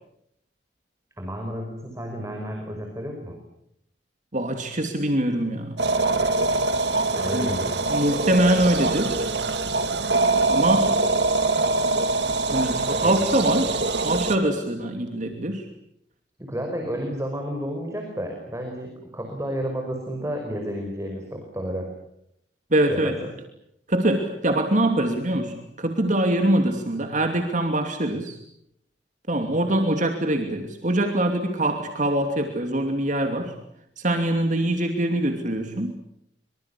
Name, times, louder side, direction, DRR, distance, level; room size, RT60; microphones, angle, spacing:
voice 1, 1.2-3.4 7.1-7.9 13.0-13.2 16.4-21.9 22.9-23.2, equal, 15° right, 2 dB, 5.4 m, -31 dB
voice 2, 4.3-5.8 7.3-7.5 7.9-9.2 10.5-10.9 12.5-13.8 14.0-15.6 22.7-23.1 23.9-28.4 29.3-33.5 34.0-36.0, right 1 dB, 45° right, 5 dB, 2.8 m, -23 dB
sound 1, 5.8-14.4, right 3 dB, 70° right, 2.8 m, -23 dB
25.5 x 24.5 x 8.5 m, 0.76 s
head